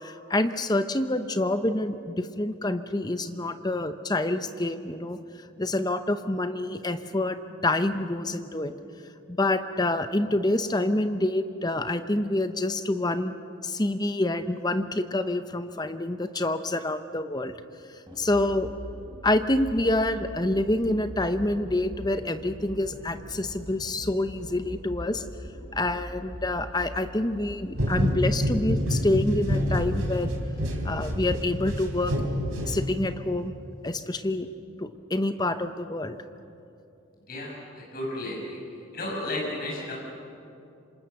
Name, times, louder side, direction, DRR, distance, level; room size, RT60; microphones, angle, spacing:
voice 1, 0.0-5.2 5.6-8.7 9.3-17.6 18.2-18.7 19.2-25.2 25.7-30.3 30.8-32.1 32.6-33.5 33.8-34.5 34.8-36.2, left 1 dB, 20° left, 9 dB, 0.8 m, -27 dB
sound 1, 18.1-32.8, equal, 25° right, 3.8 m, -42 dB
sound 2, 27.7-33.3, equal, 85° right, 3.6 m, -28 dB
voice 2, 37.2-38.6 38.9-39.9, left 1 dB, 45° left, -2 dB, 6.1 m, -33 dB
27.0 x 26.0 x 6.7 m, 2.7 s
head